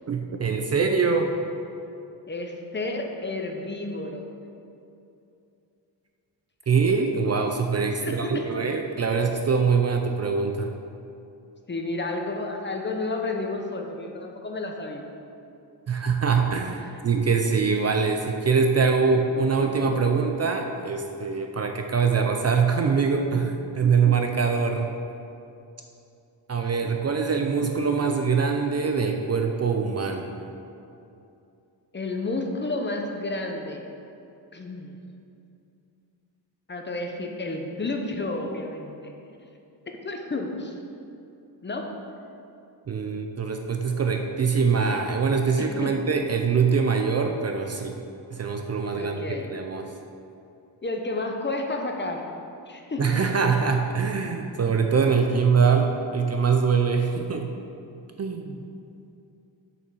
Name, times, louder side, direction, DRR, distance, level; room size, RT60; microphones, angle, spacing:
voice 1, 0.1-1.3 6.7-10.7 15.9-24.9 26.5-30.3 42.9-48.0 48.3-49.9 53.0-57.5 58.2-58.6, right 5 dB, 35° right, 4 dB, 0.5 m, -23 dB
voice 2, 2.3-4.3 8.0-8.5 11.7-15.1 16.8-16.9 31.9-33.8 34.5-35.0 36.7-39.1 40.0-40.7 41.6-41.9 45.6-45.9 48.9-49.5 50.8-52.2 52.7-53.2, left 2 dB, 25° left, 2 dB, 0.8 m, -31 dB
6.9 x 5.8 x 6.2 m, 2.7 s
wide cardioid pair, 125°, 44 cm